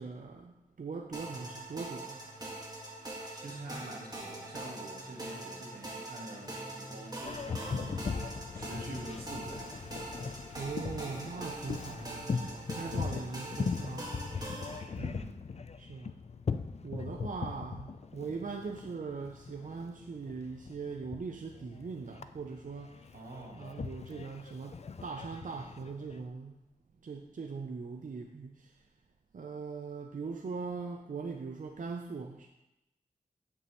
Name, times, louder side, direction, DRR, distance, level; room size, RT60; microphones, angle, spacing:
voice 1, 0.0-2.3 10.6-14.1 15.8-16.1 16.8-23.2 23.5-24.8 25.0-26.6 27.0-28.7 29.3-32.5, right 4 dB, 60° right, 3 dB, 0.5 m, -41 dB
sound 1, 1.1-14.8, right 1 dB, 25° right, 1.7 m, -43 dB
voice 2, 3.3-10.0 15.0-15.4 23.1-23.7, right 1 dB, 90° right, -2 dB, 1.6 m, -46 dB
Boat Water vehicle, 7.2-26.3, left 5 dB, 45° left, 0.4 m, -40 dB
9.5 x 5.4 x 3.0 m, 0.91 s
wide cardioid pair, 55°, 15 cm